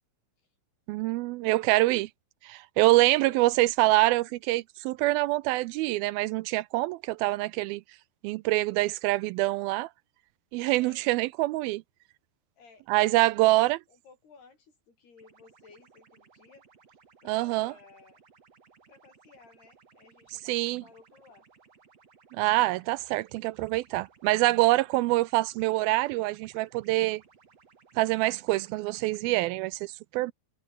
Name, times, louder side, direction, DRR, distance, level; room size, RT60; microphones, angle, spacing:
voice 1, 0.9-2.1 2.4-7.8 8.2-9.9 10.5-11.8 12.9-13.8 17.3-17.7 20.5-20.8 22.3-27.2 28.0-30.3, right 19 dB, 80° right, 2.3 m, -25 dB
voice 2, 10.8-11.1 12.6-16.7 17.2-18.2 18.9-21.5, left 4 dB, 85° left, 8.6 m, -56 dB
sound 1, 15.2-29.2, right 5 dB, 40° right, 4.2 m, -60 dB
omnidirectional pair, 4.5 m